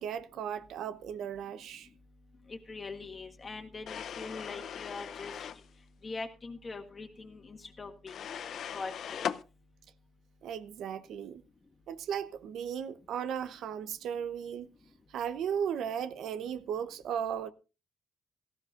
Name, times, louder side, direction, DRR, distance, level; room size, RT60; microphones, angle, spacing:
voice 1, 0.0-1.9 10.4-11.4 11.9-14.7 15.1-17.5, right 8 dB, 75° right, 0.8 m, -36 dB
voice 2, 2.5-5.5 6.0-8.3 8.7-9.3, left 3 dB, 30° left, 1.6 m, -42 dB
sound 1, 3.9-5.6 8.1-9.4, left 8 dB, 60° left, 0.6 m, -39 dB
17.5 x 14.5 x 2.5 m
cardioid pair, 120°, 0 cm